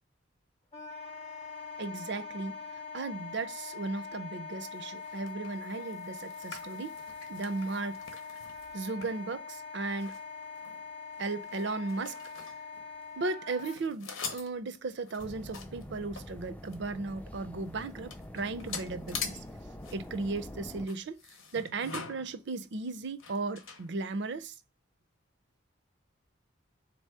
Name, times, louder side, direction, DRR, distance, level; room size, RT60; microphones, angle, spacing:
Wind instrument woodwind instrument, 0.7-13.8, left 5 dB, 30° left, 0.7 m, -43 dB
voice 1, 1.8-2.5 2.9-7.0 7.3-8.0 8.7-10.1 11.2-12.2 13.2-19.4 19.9-21.2 21.5-24.5, right 3 dB, 60° right, 0.5 m, -36 dB
sound 1, 4.7-13.3 13.6-16.9 17.4-17.5 17.6-24.4, left 5 dB, 90° left, 0.9 m, -45 dB
sound 2, 15.2-20.9, left 1 dB, 5° left, 0.3 m, -46 dB
3.9 x 2.8 x 4.6 m
head